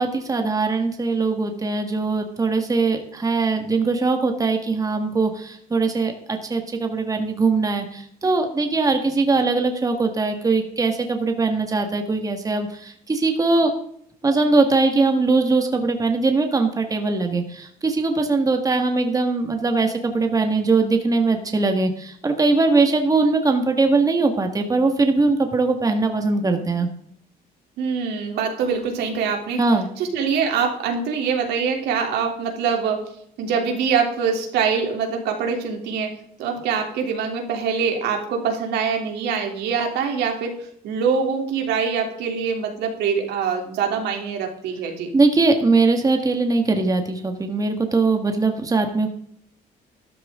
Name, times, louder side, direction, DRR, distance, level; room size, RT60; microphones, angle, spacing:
voice 1, 0.0-13.7 14.2-26.9 29.6-29.9 45.1-49.1, right 3 dB, 20° right, 5 dB, 1.7 m, -21 dB
voice 2, 27.8-29.6 30.0-33.1 33.4-40.6 40.8-45.1, right 6 dB, 80° right, 2 dB, 3.2 m, -24 dB
13.0 x 12.0 x 3.8 m, 0.68 s
cardioid pair, 110°, 17 cm